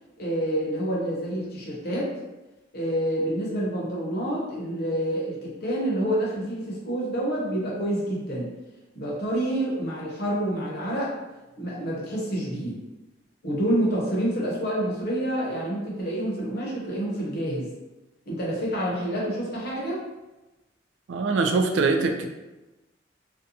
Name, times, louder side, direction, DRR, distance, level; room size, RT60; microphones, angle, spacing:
voice 1, 0.2-2.1 2.7-8.5 8.9-11.1 11.6-12.8 13.4-17.7 18.3-20.0, right 1 dB, 60° left, -5 dB, 0.8 m, -28 dB
voice 2, 21.1-22.3, right 3 dB, 85° right, 5 dB, 0.3 m, -23 dB
2.6 x 2.2 x 2.6 m, 1.1 s
head